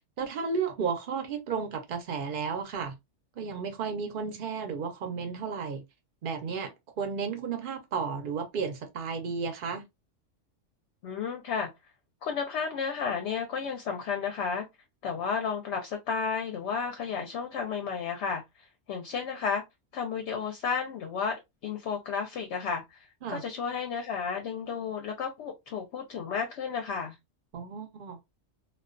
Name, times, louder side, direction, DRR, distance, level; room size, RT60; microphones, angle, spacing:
voice 1, 0.2-3.0 3.4-5.8 6.2-6.7 7.0-9.8 23.2-23.4 27.5-28.2, right 5 dB, 50° right, 0.7 m, -33 dB
voice 2, 11.0-11.7 12.2-14.7 15.0-18.4 18.9-19.6 19.9-27.2, left 6 dB, 65° left, 0.8 m, -32 dB
2.3 x 2.3 x 2.4 m
omnidirectional pair, 1.4 m